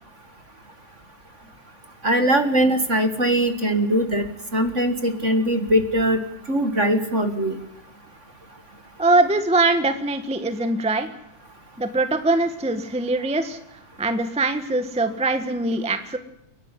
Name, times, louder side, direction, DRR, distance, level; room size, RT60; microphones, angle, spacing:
voice 1, 2.0-4.2 4.5-6.2 6.5-7.6, right 1 dB, 30° right, 9 dB, 1.4 m, -21 dB
voice 2, 9.0-11.1 11.8-13.6 14.0-16.2, right 2 dB, 5° right, 9 dB, 0.7 m, -22 dB
29.5 x 12.0 x 9.8 m, 0.81 s
omnidirectional pair, 3.3 m